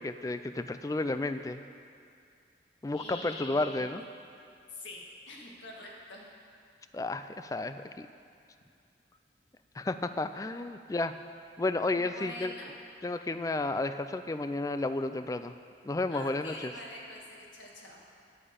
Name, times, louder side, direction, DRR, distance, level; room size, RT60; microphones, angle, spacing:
voice 1, 0.0-1.6 2.8-4.0 6.9-8.1 9.8-11.1 11.6-12.5 13.0-15.5 15.8-16.7, left 2 dB, 20° left, 10 dB, 0.3 m, -32 dB
voice 2, 2.9-4.0 4.7-6.3 11.9-12.7 16.1-18.0, left 2 dB, 85° left, -2 dB, 1.8 m, -45 dB
9.2 x 8.6 x 6.9 m, 2.4 s
head